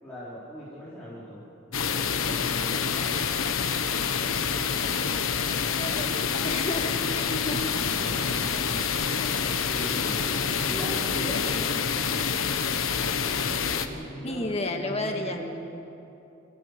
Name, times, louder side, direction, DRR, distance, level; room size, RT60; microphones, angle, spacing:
voice 1, 0.0-3.3 7.6-8.8 9.6-10.2 10.6-11.8 13.7-15.5, equal, 10° left, -11 dB, 4.7 m, -39 dB
sound 1, 1.7-13.9, left 6 dB, 85° left, 1.2 m, -27 dB
voice 2, 5.5-7.6 14.2-15.4, left 2 dB, 30° left, 3 dB, 1.8 m, -32 dB
29.0 x 16.5 x 6.8 m, 2.8 s
head